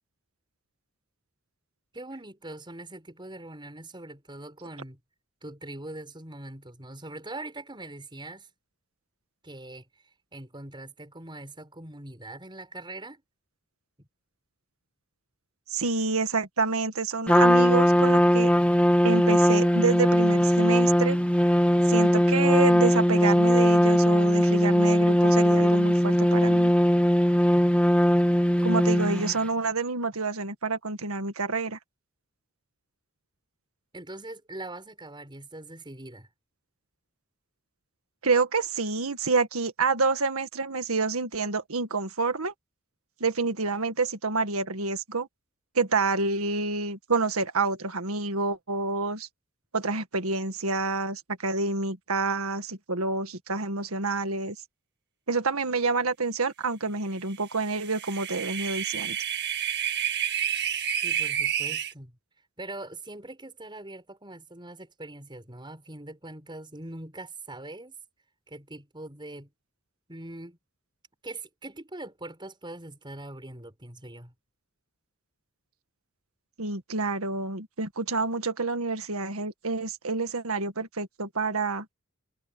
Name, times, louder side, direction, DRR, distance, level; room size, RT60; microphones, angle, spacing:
voice 1, 1.9-5.0 5.4-8.5 9.4-9.8 10.3-13.2 14.0-14.1 28.6-28.7 33.9-36.3 61.0-62.2 62.6-68.0 68.5-69.5 70.1-70.6 71.2-74.3, right 2 dB, 20° right, 6.4 m, -42 dB
voice 2, 15.7-18.5 19.0-21.2 21.9-26.7 28.6-31.8 38.2-42.5 43.2-45.3 45.8-49.3 49.7-54.6 55.3-59.2 76.6-81.9, right 3 dB, 80° right, 1.8 m, -28 dB
Trumpet, 17.3-29.4, equal, 5° left, 2.0 m, -20 dB
sound 1, 57.6-61.9, right 9 dB, 50° right, 1.8 m, -29 dB
head